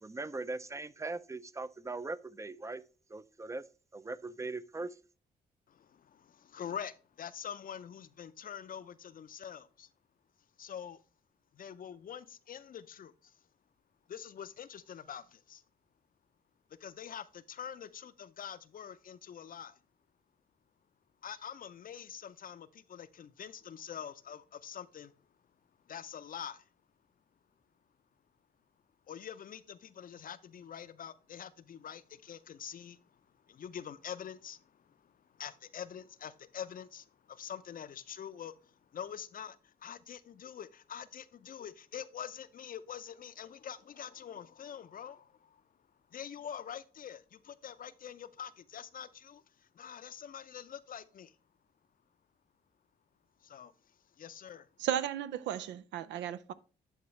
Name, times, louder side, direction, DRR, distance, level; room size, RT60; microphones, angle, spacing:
voice 1, 0.0-2.8 3.1-3.6 3.9-5.0, right 3 dB, 15° right, 0.4 m, -40 dB
voice 2, 5.7-9.9 10.6-11.0 11.5-13.3 14.1-15.6 16.8-19.8 21.2-25.1 25.9-26.7 29.1-45.6 46.1-51.4 53.4-53.7 54.2-54.7, left 8 dB, 50° left, 0.5 m, -45 dB
voice 3, 54.8-56.5, right 10 dB, 85° right, 0.4 m, -34 dB
11.0 x 3.8 x 3.2 m
cardioid pair, 70°, 18 cm